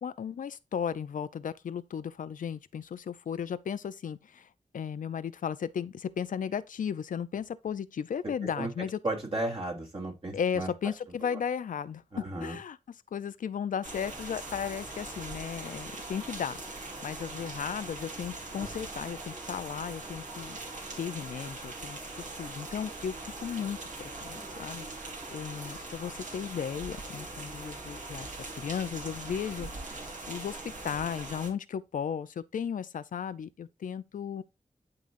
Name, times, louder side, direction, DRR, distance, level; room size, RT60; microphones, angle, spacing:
voice 1, 0.0-4.5 4.7-9.0 10.3-20.6 21.0-22.0 22.4-30.0 30.3-34.4, left 7 dB, 85° left, 0.5 m, -35 dB
voice 2, 9.0-10.7 11.2-11.4 12.1-12.6, right 2 dB, 45° right, 2.8 m, -34 dB
sound 1, 13.8-31.5, right 2 dB, 75° right, 2.3 m, -41 dB
11.5 x 3.9 x 2.6 m
wide cardioid pair, 75°, 13 cm